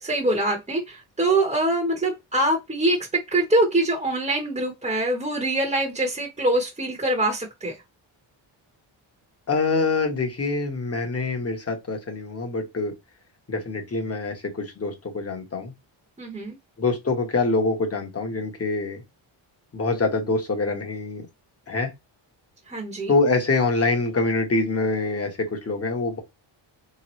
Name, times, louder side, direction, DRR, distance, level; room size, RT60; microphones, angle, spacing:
voice 1, 0.0-7.8 16.2-16.6 22.7-23.1, right 1 dB, 15° right, 0.9 m, -24 dB
voice 2, 9.5-12.9 13.5-15.7 16.8-19.0 19.7-21.3 21.7-21.9 23.1-26.2, left 3 dB, 30° left, 1.1 m, -25 dB
3.5 x 3.1 x 3.0 m
cardioid pair, 115°, 48 cm